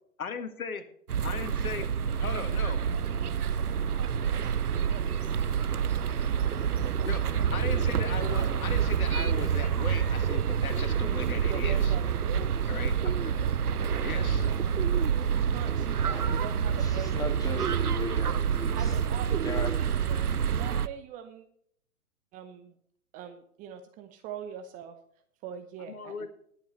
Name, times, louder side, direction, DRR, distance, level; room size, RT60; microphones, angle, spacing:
voice 1, 0.2-0.9 1.2-1.9 2.1-2.8 7.0-11.9 12.7-13.3 14.0-14.5 25.9-26.3, left 5 dB, 70° left, 9 dB, 1.7 m, -37 dB
sound 1, 1.1-20.9, right 7 dB, 85° right, 0.7 m, -27 dB
voice 2, 11.5-12.6 14.0-14.6 15.3-17.4 18.7-19.7 20.1-21.5 22.3-22.7 23.1-24.9 25.4-26.3, right 9 dB, 20° right, 7 dB, 0.8 m, -43 dB
voice 3, 15.9-19.0 19.4-19.8, left 2 dB, 10° left, 2 dB, 2.1 m, -38 dB
21.0 x 8.2 x 3.1 m, 0.66 s
figure-of-eight pair, 120°, 44 cm